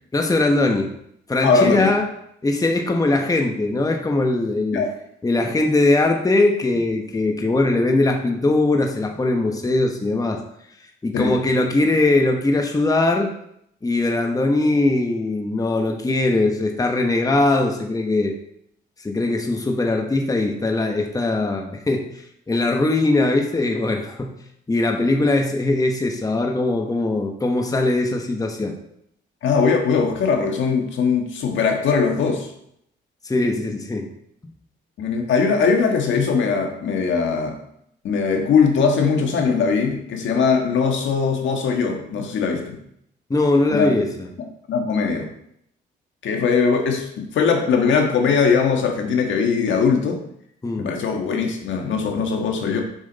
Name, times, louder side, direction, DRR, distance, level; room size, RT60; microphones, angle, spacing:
voice 1, 0.1-0.9 1.3-2.0 2.4-4.9 5.2-10.4 11.0-13.3 13.8-18.3 19.0-22.0 22.5-24.4 24.7-28.7 33.2-34.1 43.3-44.3 50.6-50.9, left 2 dB, 20° left, 2 dB, 1.1 m, -20 dB
voice 2, 1.4-1.9 4.7-4.9 11.1-11.4 29.4-32.5 35.0-37.6 38.0-42.8 43.7-43.9 44.7-45.3 46.2-50.2 50.8-52.8, left 5 dB, 75° left, 3 dB, 1.5 m, -20 dB
7.2 x 6.2 x 4.1 m, 0.72 s
cardioid pair, 90°, 20 cm